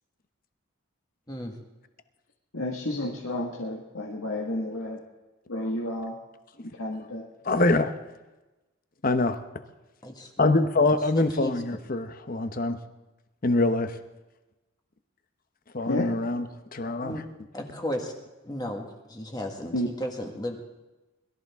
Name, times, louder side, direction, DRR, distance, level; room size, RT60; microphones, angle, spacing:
voice 1, 2.5-5.0 5.5-6.2 6.8-7.3 15.9-16.1 19.7-19.9, left 1 dB, 85° left, -1 dB, 1.8 m, -31 dB
voice 2, 7.4-7.9 9.0-9.4 10.4-12.8 13.4-13.9 15.7-17.2, left 2 dB, 40° left, 9 dB, 0.9 m, -24 dB
voice 3, 10.9-11.5 17.0-17.2 17.5-18.1 18.4-20.6, equal, 20° left, 2 dB, 1.6 m, -34 dB
21.5 x 13.5 x 3.6 m, 1.1 s
head